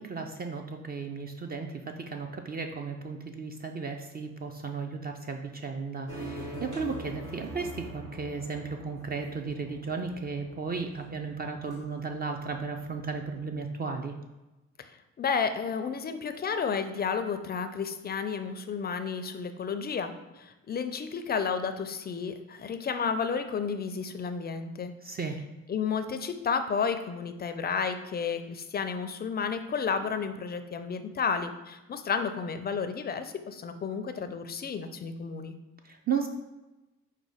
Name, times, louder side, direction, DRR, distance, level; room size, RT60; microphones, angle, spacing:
voice 1, 0.0-14.1 25.0-25.4 35.8-36.3, right 5 dB, 30° right, 4 dB, 0.4 m, -35 dB
sound 1, 6.1-13.5, right 2 dB, 75° right, 1.4 m, -44 dB
voice 2, 15.2-24.9 25.7-35.5, left 6 dB, 35° left, 9 dB, 0.4 m, -32 dB
4.9 x 2.2 x 4.9 m, 1.1 s
cardioid pair, 90°, 30 cm